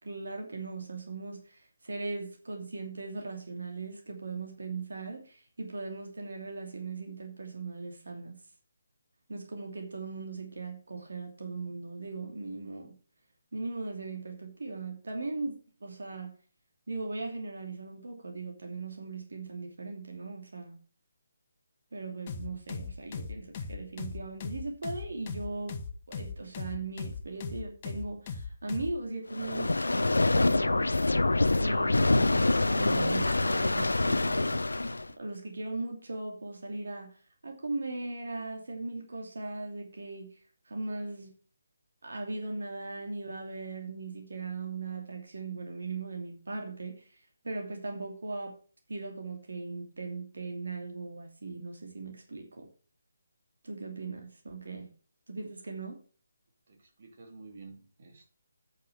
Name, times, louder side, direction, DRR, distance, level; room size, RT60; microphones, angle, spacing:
voice 1, 0.0-8.4 9.3-12.9 13.5-16.3 16.9-20.8 21.9-25.8 26.1-31.0 31.5-34.6 35.2-37.2 37.4-40.3 40.7-41.3 42.0-47.1 47.4-48.6 48.9-52.7 53.6-54.9 55.3-56.0, right 3 dB, 65° right, 2.8 m, -38 dB
sound 1, 22.3-29.0, left 5 dB, 30° left, 1.3 m, -38 dB
sound 2, 29.3-35.1, left 2 dB, 75° left, 0.6 m, -26 dB
voice 2, 56.7-58.3, right 3 dB, 50° right, 2.8 m, -51 dB
9.2 x 6.7 x 6.8 m
figure-of-eight pair, 150°, 0 cm